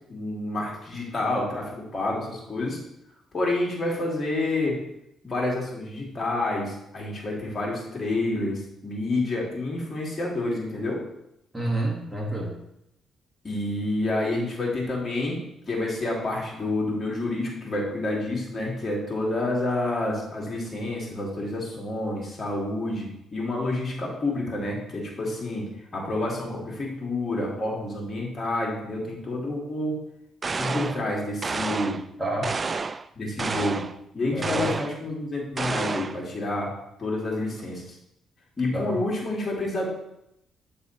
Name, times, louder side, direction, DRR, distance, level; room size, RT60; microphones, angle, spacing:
voice 1, 0.1-2.8 3.3-4.8 5.2-11.0 13.4-15.4 15.7-25.6 25.9-30.0 30.6-32.0 33.2-33.9 34.1-36.7 37.0-37.8 38.6-39.9, left 2 dB, 35° left, -3 dB, 2.4 m, -28 dB
voice 2, 11.5-12.6 32.2-32.5 34.3-34.7 38.7-39.0, right 1 dB, 10° right, -2 dB, 1.6 m, -28 dB
sound 1, 30.4-31.0 31.4-32.1 32.4-33.1 33.4-33.9 34.4-35.0 35.6-36.2, right 4 dB, 35° right, 0.3 m, -30 dB
8.8 x 4.0 x 4.1 m, 0.81 s
cardioid pair, 90°, 0 cm